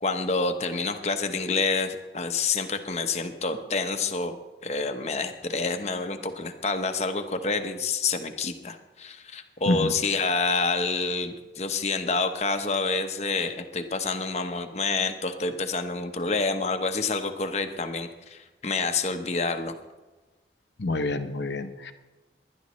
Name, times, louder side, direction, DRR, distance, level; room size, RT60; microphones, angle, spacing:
voice 1, 0.0-4.4 4.6-19.7, left 4 dB, 40° left, 7 dB, 0.9 m, -28 dB
voice 2, 20.8-21.9, left 2 dB, 80° left, 8 dB, 0.9 m, -27 dB
19.5 x 11.0 x 3.1 m, 1.2 s
head